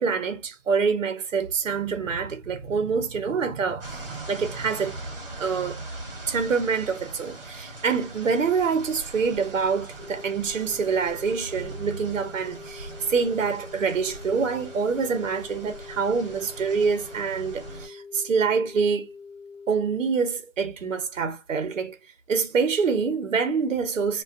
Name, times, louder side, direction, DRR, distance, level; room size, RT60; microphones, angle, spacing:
voice 1, 0.0-5.0 5.4-5.8 6.3-19.1 19.7-22.0 22.3-24.2, right 5 dB, 70° right, 0.6 m, -26 dB
sound 1, 3.8-17.9, right 2 dB, 45° right, 0.9 m, -41 dB
sound 2, 10.0-20.0, left 5 dB, 85° left, 0.9 m, -44 dB
2.4 x 2.1 x 2.4 m
figure-of-eight pair, 170°, 40 cm